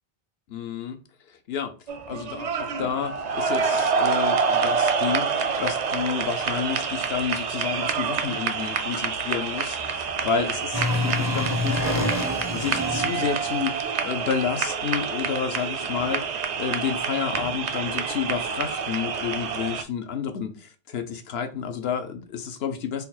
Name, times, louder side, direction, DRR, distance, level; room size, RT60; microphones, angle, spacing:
voice 1, 0.5-1.0 1.5-1.7 2.1-13.7 14.0-23.0, left 7 dB, 75° left, 0.9 m, -30 dB
sound 1, 1.9-19.8, right 6 dB, 55° right, 0.5 m, -27 dB
sound 2, 10.7-13.5, left 2 dB, 20° left, 0.5 m, -27 dB
4.0 x 2.2 x 4.1 m
omnidirectional pair, 1.1 m